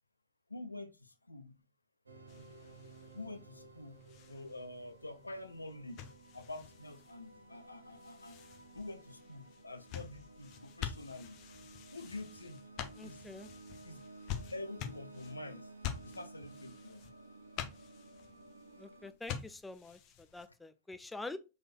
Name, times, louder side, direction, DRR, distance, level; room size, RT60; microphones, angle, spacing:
voice 1, 0.5-1.6 2.4-2.5 3.1-6.1 6.3-8.4 8.7-11.4 11.9-12.7 13.0-13.3 13.8-14.1 14.5-15.7 16.0-17.0, left 2 dB, 80° left, 0.4 m, -47 dB
sound 1, 2.0-19.1, right 2 dB, 80° right, 0.6 m, -55 dB
sound 2, 2.3-20.5, left 9 dB, 40° left, 0.7 m, -48 dB
voice 2, 13.0-13.5 18.8-21.4, left 2 dB, 10° left, 0.4 m, -46 dB
4.0 x 3.2 x 2.3 m
figure-of-eight pair, 90°, 0 cm